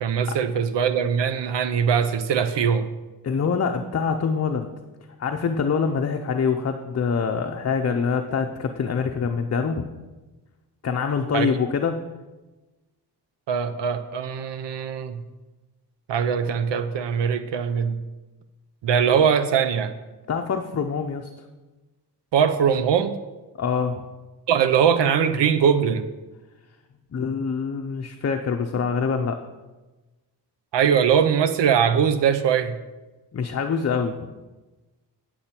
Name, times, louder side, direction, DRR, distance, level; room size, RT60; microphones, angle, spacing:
voice 1, 0.0-2.9 11.3-11.5 13.5-15.2 16.1-18.0 18.8-19.9 22.3-23.1 24.5-26.1 30.7-32.8, right 7 dB, 90° right, 11 dB, 0.6 m, -21 dB
voice 2, 3.2-4.7 5.2-9.9 10.8-12.0 20.3-21.3 23.6-24.0 27.1-29.4 33.3-34.2, left 6 dB, 40° left, 4 dB, 0.6 m, -25 dB
8.6 x 8.4 x 4.4 m, 1.2 s
wide cardioid pair, 105°, 42 cm